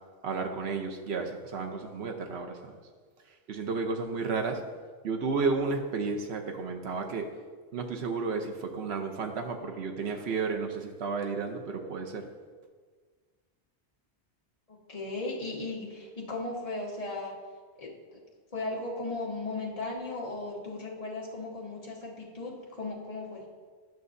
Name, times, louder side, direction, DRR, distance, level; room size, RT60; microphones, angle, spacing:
voice 1, 0.2-2.8 3.5-4.6 5.0-7.3 7.7-12.3, right 4 dB, 70° right, 4 dB, 1.0 m, -32 dB
voice 2, 14.7-17.4 17.8-18.2 18.5-23.4, left 2 dB, 35° left, -3 dB, 1.3 m, -36 dB
10.5 x 6.1 x 2.6 m, 1.5 s
omnidirectional pair, 1.2 m